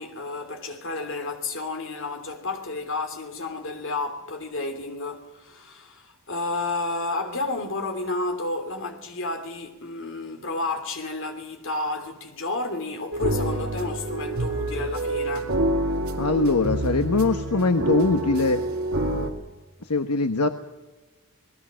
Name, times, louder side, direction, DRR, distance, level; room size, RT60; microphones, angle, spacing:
voice 1, 0.0-15.5, left 2 dB, 60° left, 3.1 m, -31 dB
sound 1, 13.1-19.3, right 1 dB, 70° right, 2.9 m, -27 dB
voice 2, 16.2-18.6 19.9-20.5, left 3 dB, 85° left, 1.1 m, -22 dB
27.5 x 20.0 x 6.3 m
head